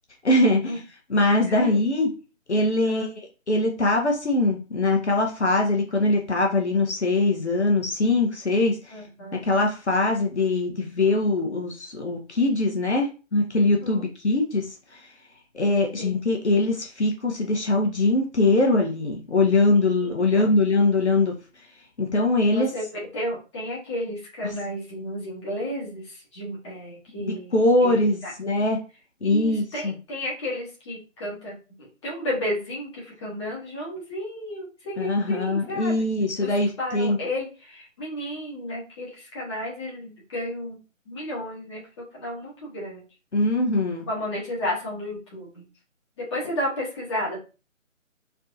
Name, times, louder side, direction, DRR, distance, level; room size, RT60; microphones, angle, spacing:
voice 1, 0.2-0.8 1.1-2.1 2.5-3.1 3.5-9.0 9.4-15.1 15.5-21.3 22.0-22.7 27.2-28.8 29.2-29.9 35.0-37.2 43.3-44.1, left 2 dB, 60° left, 2 dB, 1.0 m, -22 dB
voice 2, 1.5-1.8 2.8-3.1 8.9-9.5 13.8-14.1 16.0-16.1 20.0-20.5 22.5-28.3 29.2-36.5 36.8-40.8 41.1-41.8 42.1-43.0 44.1-45.7 46.2-47.4, left 1 dB, 20° left, -5 dB, 1.4 m, -32 dB
4.6 x 2.8 x 2.5 m, 0.33 s
figure-of-eight pair, 145°, 39 cm